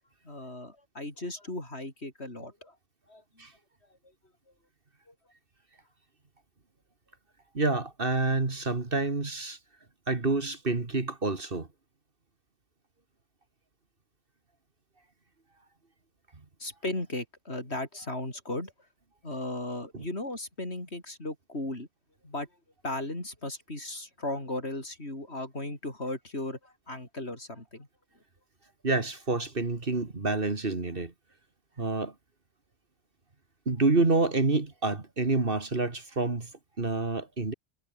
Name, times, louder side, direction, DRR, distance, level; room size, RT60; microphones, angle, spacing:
voice 1, 0.2-2.8 3.1-3.5 5.1-5.2 16.6-18.7 19.2-21.9 22.2-22.5 22.8-27.9, left 2 dB, 65° left, 6.3 m, -36 dB
voice 2, 7.5-9.6 10.1-11.7 19.9-20.1 28.8-31.1 31.8-32.1 33.7-36.5 36.8-37.5, right 3 dB, 50° right, 2.5 m, -28 dB
omnidirectional pair, 1.2 m